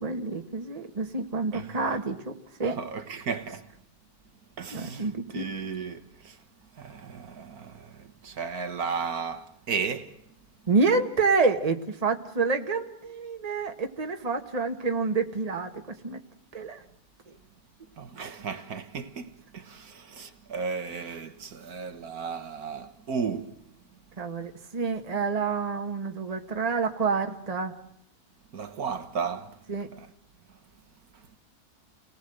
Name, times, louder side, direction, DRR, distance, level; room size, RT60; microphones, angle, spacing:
voice 1, 0.0-2.2 2.6-2.8 4.7-5.5 10.7-15.7 16.0-16.2 16.5-16.8 24.2-27.7 29.7-29.9, right 4 dB, 25° right, 1.6 m, -28 dB
voice 2, 1.5-2.0 2.6-3.6 4.6-6.4 6.8-10.1 18.0-23.5 28.5-29.5 29.9-30.1, right 5 dB, 65° right, 1.8 m, -34 dB
29.0 x 18.5 x 7.9 m
omnidirectional pair, 1.7 m